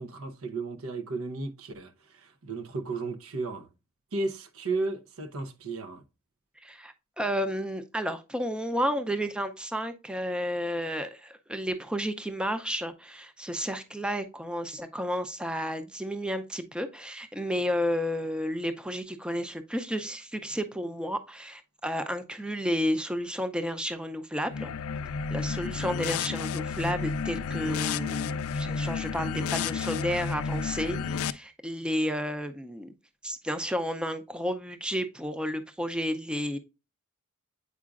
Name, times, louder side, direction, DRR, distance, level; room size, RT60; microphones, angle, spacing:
voice 1, 0.0-3.7 4.1-6.0, right 3 dB, 80° right, 0.8 m, -34 dB
voice 2, 6.6-24.7 25.3-32.9 33.2-36.6, equal, 5° right, 0.5 m, -32 dB
sound 1, 24.5-31.3, left 5 dB, 85° left, 0.4 m, -31 dB
8.3 x 4.8 x 2.4 m
head